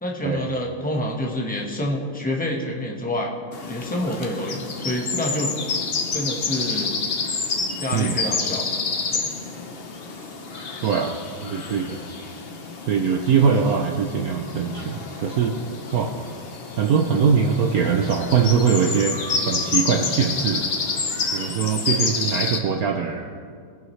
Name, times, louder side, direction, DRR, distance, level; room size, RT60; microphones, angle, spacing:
voice 1, 0.0-3.3 3.7-5.6 6.1-7.0 7.8-8.7 9.1-9.3, left 1 dB, 5° left, -2 dB, 0.8 m, -27 dB
sound 1, 3.5-22.6, left 4 dB, 60° left, 0.6 m, -29 dB
voice 2, 7.9-8.2 10.8-12.0 12.9-15.6 15.9-16.1 16.8-19.2 19.5-20.6 21.3-23.3, right 6 dB, 85° right, 3 dB, 0.8 m, -22 dB
19.5 x 11.0 x 3.2 m, 2.2 s
omnidirectional pair, 2.4 m